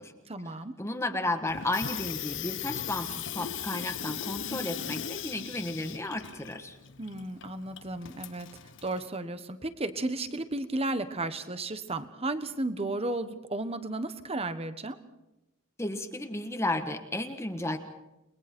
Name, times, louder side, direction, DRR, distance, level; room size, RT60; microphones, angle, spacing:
voice 1, 0.3-0.8 7.0-8.5 8.8-15.0, right 2 dB, 30° right, 11 dB, 1.3 m, -33 dB
voice 2, 0.8-6.8 15.8-17.8, left 2 dB, 15° left, 5 dB, 1.5 m, -33 dB
Water tap faucet / Sink (filling or washing), 1.5-9.1, left 9 dB, 60° left, 0.8 m, -38 dB
30.0 x 21.5 x 4.5 m, 0.94 s
head